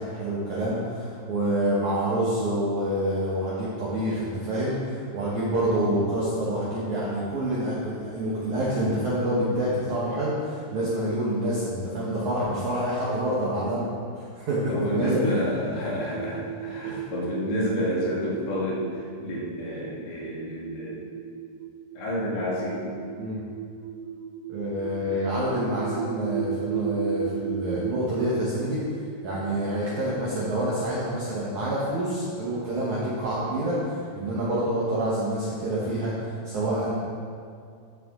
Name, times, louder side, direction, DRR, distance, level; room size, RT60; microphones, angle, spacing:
voice 1, 0.0-13.9 14.1-15.2 16.8-17.1 19.2-19.3 23.2-23.4 24.5-28.8 29.2-36.1 36.4-37.0, right 1 dB, 70° right, -8 dB, 1.8 m, -27 dB
voice 2, 14.7-21.0 21.9-22.8 25.1-25.3, equal, 75° left, -5 dB, 4.0 m, -29 dB
sound 1, 15.3-31.6, right 9 dB, 85° right, 2.4 m, -36 dB
13.0 x 6.8 x 3.7 m, 2.3 s
omnidirectional pair, 5.2 m